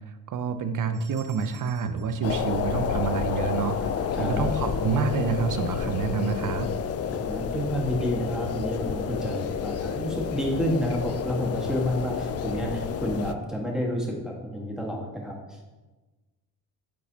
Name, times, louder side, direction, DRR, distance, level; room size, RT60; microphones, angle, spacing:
voice 1, 0.1-3.9 4.2-6.7, right 5 dB, 45° right, 10 dB, 0.6 m, -28 dB
sound 1, 0.9-3.3, right 4 dB, 70° right, 2.0 m, -54 dB
sound 2, 2.2-13.3, left 7 dB, 35° left, 0.4 m, -30 dB
voice 2, 4.1-4.5 7.1-15.7, equal, ahead, -2 dB, 1.6 m, -30 dB
8.4 x 4.0 x 2.8 m, 1.2 s
supercardioid pair, 60°, 46 cm